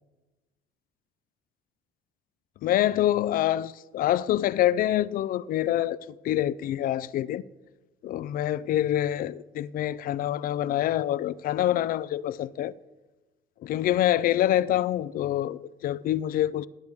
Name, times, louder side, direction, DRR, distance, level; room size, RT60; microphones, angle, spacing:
voice 1, 2.6-7.4 8.0-12.7 13.6-16.7, left 12 dB, 55° left, 0.4 m, -26 dB
19.0 x 7.8 x 3.5 m
cardioid pair, 110°, 17 cm